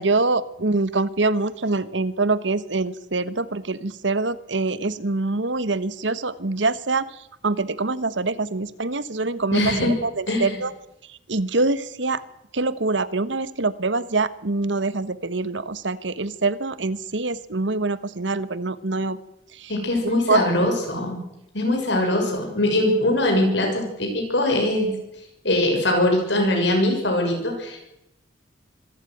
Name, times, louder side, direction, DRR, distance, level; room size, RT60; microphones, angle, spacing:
voice 1, 0.0-10.7 11.1-12.2 12.5-19.2 19.5-19.7 20.0-20.4, right 3 dB, 80° right, 15 dB, 1.3 m, -25 dB
voice 2, 9.5-9.9 10.3-10.6 19.7-21.2 21.5-24.9 25.4-27.8, left 1 dB, 75° left, 2 dB, 6.5 m, -22 dB
25.5 x 14.0 x 9.4 m, 0.88 s
head